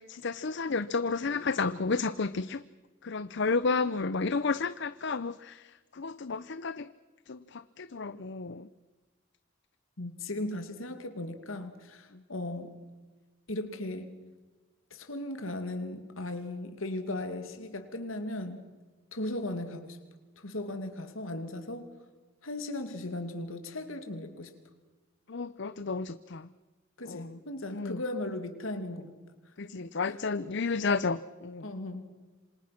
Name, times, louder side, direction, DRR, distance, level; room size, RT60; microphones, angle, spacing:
voice 1, 0.0-2.6 3.0-6.9 7.3-8.7 25.3-26.5 27.1-27.4 27.7-28.0 29.6-31.7, left 4 dB, 60° left, 14 dB, 0.7 m, -32 dB
voice 2, 10.0-12.8 13.5-14.1 14.9-18.6 19.1-20.0 20.4-21.9 22.4-24.5 27.0-29.1 29.6-30.2 31.6-32.1, left 1 dB, 85° left, 7 dB, 2.6 m, -37 dB
27.5 x 26.0 x 6.0 m, 1.2 s
head